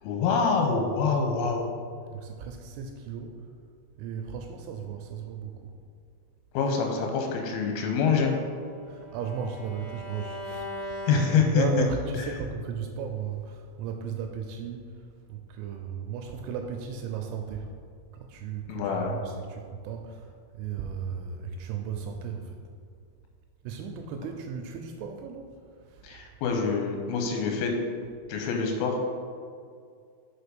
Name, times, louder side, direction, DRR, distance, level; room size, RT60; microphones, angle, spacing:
voice 1, 0.0-1.7 6.5-8.3 11.1-11.9 18.7-19.2 26.0-27.8 28.3-29.1, left 5 dB, 85° left, 2 dB, 3.2 m, -25 dB
voice 2, 2.1-3.5 4.0-5.8 8.9-17.8 18.1-22.6 23.6-25.6 25.9-26.0, right 6 dB, 85° right, 4 dB, 2.7 m, -36 dB
Bowed string instrument, 7.9-12.1, equal, 55° left, 1.9 m, -40 dB
6.7 x 4.7 x 5.1 m, 2.2 s
omnidirectional pair, 5.9 m